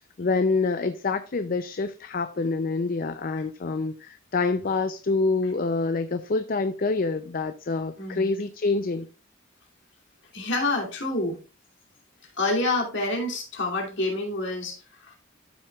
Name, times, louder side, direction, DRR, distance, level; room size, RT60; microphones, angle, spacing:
voice 1, 0.2-9.1, left 3 dB, 45° left, 0.5 m, -26 dB
voice 2, 8.0-8.3 10.3-11.4 12.4-15.2, left 2 dB, 60° left, 2.7 m, -28 dB
13.0 x 5.8 x 2.4 m
head